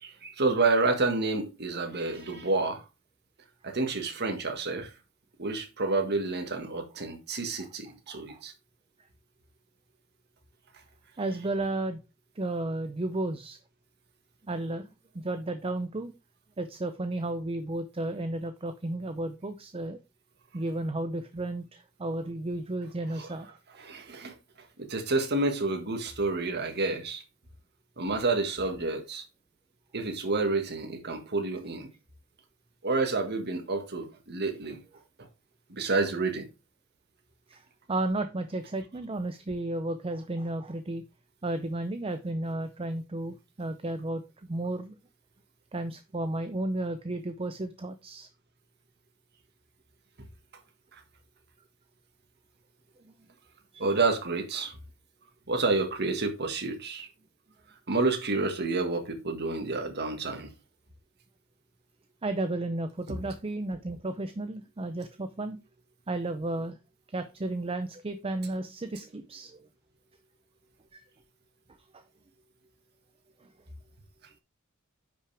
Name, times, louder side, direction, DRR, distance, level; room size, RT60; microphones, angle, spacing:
voice 1, 0.0-2.8 3.6-4.9 5.4-8.5 23.2-23.3 23.8-27.2 28.0-29.2 29.9-31.9 32.8-34.8 35.2-35.3 35.7-36.5 50.9-51.0 53.8-54.8 55.5-57.1 57.9-60.5 63.1-63.2, right 3 dB, 50° right, 1.7 m, -29 dB
voice 2, 8.1-8.4 11.2-12.0 12.4-13.6 14.5-16.1 16.6-20.0 20.5-23.6 37.5-41.0 41.4-45.0 45.7-48.3 53.0-53.1 53.7-54.0 62.2-65.6 66.1-66.8 67.1-69.7 70.9-71.1 71.9-72.0 73.4-73.5, right 2 dB, 25° right, 0.6 m, -33 dB
9.7 x 5.8 x 3.4 m
head